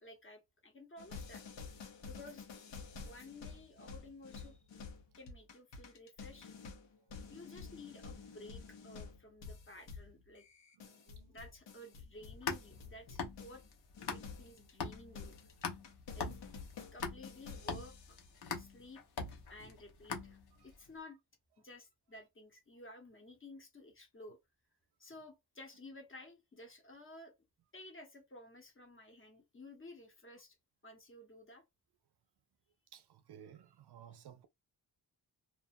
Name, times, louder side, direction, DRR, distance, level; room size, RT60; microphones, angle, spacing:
voice 1, 0.0-1.4 2.0-2.5 3.0-4.6 5.2-6.5 7.3-10.5 11.3-13.6 14.1-15.4 16.1-16.3 16.9-18.2 18.5-19.0 19.5-21.2 21.6-24.4 25.0-27.3 27.7-30.6 30.8-31.6, left 2 dB, 30° left, 0.8 m, -54 dB
sound 1, 1.0-13.7 13.9-18.3, left 5 dB, 90° left, 0.9 m, -50 dB
voice 2, 10.7-11.4 20.6-20.7 32.9-34.5, right 9 dB, 65° right, 0.5 m, -57 dB
sound 2, 12.1-14.5 14.8-20.7, left 5 dB, 65° left, 0.8 m, -42 dB
2.4 x 2.4 x 2.5 m
wide cardioid pair, 160°, 43 cm